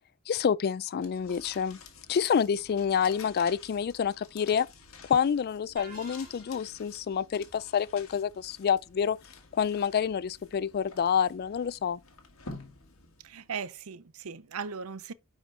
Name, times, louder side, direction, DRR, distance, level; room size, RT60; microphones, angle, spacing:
voice 1, 0.3-1.8 2.1-4.7 5.0-9.2 9.5-12.0, left 7 dB, 45° left, 0.3 m, -28 dB
sound 1, 1.0-13.6, left 4 dB, 65° left, 1.8 m, -51 dB
sound 2, 5.8-6.8, right 3 dB, 40° right, 2.8 m, -49 dB
voice 2, 13.2-15.1, right 6 dB, 75° right, 0.6 m, -38 dB
9.9 x 5.0 x 3.2 m
head